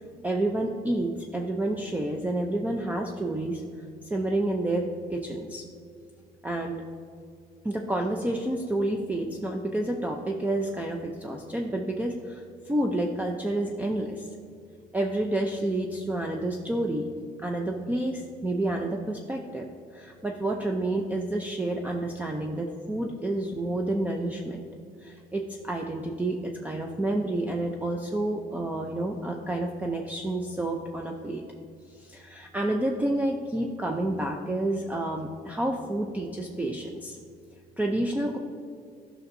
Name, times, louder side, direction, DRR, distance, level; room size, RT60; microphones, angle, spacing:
voice 1, 0.2-3.6 4.0-5.6 6.4-6.8 7.6-14.3 14.9-17.1 17.4-19.7 19.9-24.6 25.0-31.4 31.9-37.2 37.8-38.4, right 1 dB, 10° right, 2 dB, 0.5 m, -29 dB
10.5 x 6.2 x 2.6 m, 2.4 s
cardioid pair, 110°, 17 cm